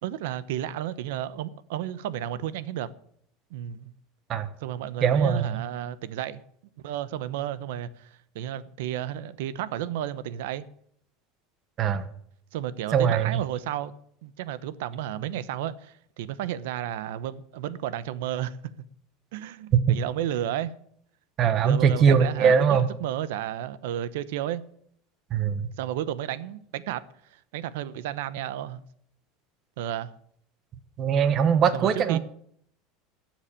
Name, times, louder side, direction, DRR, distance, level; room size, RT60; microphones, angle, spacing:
voice 1, 0.0-2.9 3.5-3.9 4.6-6.4 6.8-10.6 12.5-13.9 14.2-18.6 19.3-20.7 21.6-24.6 25.8-28.8 29.8-30.1 31.7-32.2, right 11 dB, 80° right, 0.9 m, -32 dB
voice 2, 5.0-5.6 11.8-12.1 12.9-13.4 19.7-19.9 21.4-22.9 25.3-25.7 31.0-32.2, right 7 dB, 30° right, 1.2 m, -21 dB
13.0 x 7.3 x 8.7 m
supercardioid pair, 165°, 0 cm